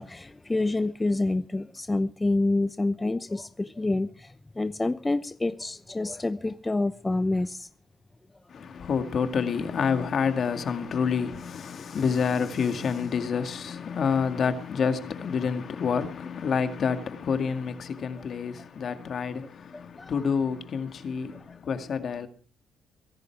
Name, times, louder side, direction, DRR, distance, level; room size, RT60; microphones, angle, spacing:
voice 1, 0.0-7.7 11.9-12.0 19.7-20.2 21.5-21.6, left 2 dB, 15° left, 0.8 m, -28 dB
voice 2, 8.5-22.3, left 6 dB, 55° left, 2.0 m, -28 dB
23.0 x 11.0 x 4.7 m
cardioid pair, 90°, 0 cm